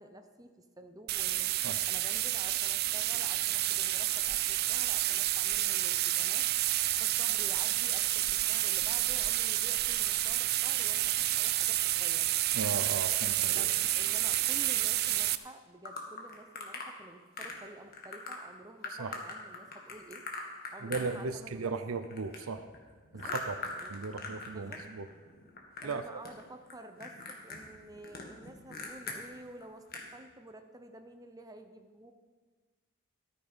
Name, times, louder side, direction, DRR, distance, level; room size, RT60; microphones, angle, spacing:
voice 1, 0.0-6.5 7.0-12.3 13.5-20.2 20.7-21.7 23.0-23.3 23.8-23.9 24.5-24.9 25.8-32.1, right 1 dB, 15° right, 7 dB, 0.8 m, -50 dB
sound 1, 1.1-15.4, right 15 dB, 50° right, 0.4 m, -29 dB
voice 2, 12.5-13.7 19.0-19.2 20.8-22.6 23.1-23.5 23.9-25.1 25.8-26.0, right 4 dB, 80° right, 9 dB, 0.7 m, -36 dB
sound 2, 15.9-16.9 17.4-17.7 17.9-18.4 18.8-21.6 21.9-24.8 25.1-26.0 26.2-26.7 27.0-29.2 29.6-29.7 29.9-30.1, left 3 dB, 45° left, 1.8 m, -41 dB
13.5 x 9.2 x 5.2 m, 1.4 s
head